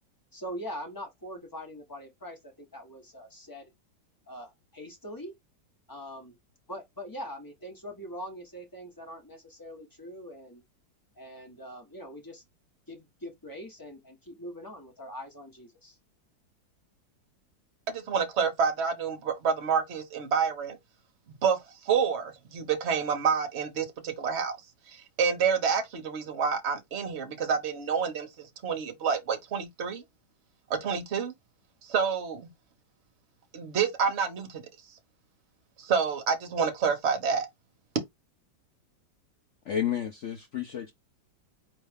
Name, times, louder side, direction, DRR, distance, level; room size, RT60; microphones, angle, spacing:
voice 1, 0.3-3.7 4.3-5.3 5.9-6.4 6.7-10.6 11.2-12.4 12.9-16.0, equal, 15° left, 1.1 m, -42 dB
voice 2, 17.9-20.8 21.4-21.6 21.8-24.5 24.9-30.0 30.7-31.3 31.8-32.5 33.5-34.6 35.8-37.5, right 6 dB, 45° right, 1.2 m, -28 dB
voice 3, 39.6-40.9, left 9 dB, 65° left, 0.7 m, -31 dB
4.3 x 3.2 x 3.5 m
omnidirectional pair, 2.0 m